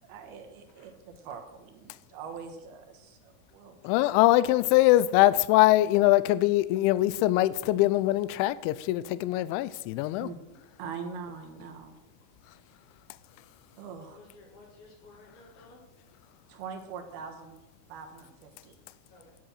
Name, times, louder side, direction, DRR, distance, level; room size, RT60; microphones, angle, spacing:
voice 1, 0.0-4.1 10.2-10.4 10.8-12.0 13.8-14.2 16.5-17.6 17.9-18.8, right 6 dB, 70° right, 2.6 m, -43 dB
voice 2, 3.8-10.3, left 16 dB, 85° left, 2.7 m, -23 dB
voice 3, 13.9-15.8 19.1-19.3, left 3 dB, 55° left, 3.9 m, -54 dB
10.5 x 10.0 x 6.4 m
omnidirectional pair, 5.8 m